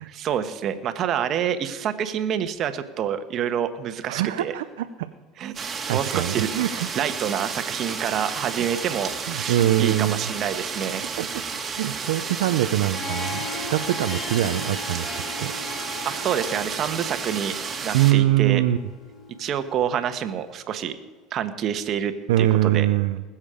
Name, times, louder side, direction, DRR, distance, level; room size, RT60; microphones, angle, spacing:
voice 1, 0.0-4.5 5.4-5.6 5.9-6.5 6.9-11.1 16.0-17.5 17.8-18.6 19.4-21.0 21.3-22.9, right 9 dB, 50° right, 10 dB, 1.3 m, -27 dB
voice 2, 4.1-5.1 5.9-6.9 8.6-8.7 9.3-10.3 11.2-15.5 17.9-18.8 22.3-23.2, right 13 dB, 85° right, 8 dB, 0.6 m, -23 dB
sound 1, 5.5-18.1, right 5 dB, 30° right, 2.2 m, -32 dB
Harp, 12.6-20.4, left 3 dB, 35° left, 4.3 m, -38 dB
20.5 x 7.3 x 5.1 m, 1.4 s
supercardioid pair, 95°, 0 cm